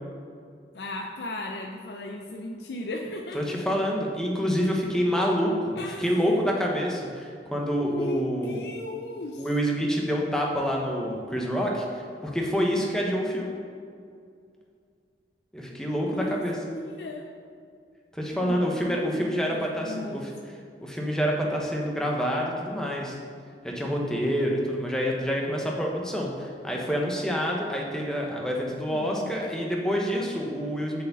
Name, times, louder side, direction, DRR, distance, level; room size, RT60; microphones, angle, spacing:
voice 1, 0.7-3.6 5.8-6.1 7.8-9.5 16.1-16.4 16.7-17.3 18.3-20.3 28.9-29.4, left 1 dB, 65° left, 1 dB, 0.6 m, -36 dB
voice 2, 3.3-8.6 9.4-13.5 15.5-16.6 18.1-20.3 20.8-23.2 23.6-31.0, equal, 5° left, -2 dB, 1.0 m, -27 dB
7.2 x 4.9 x 6.9 m, 2.3 s
head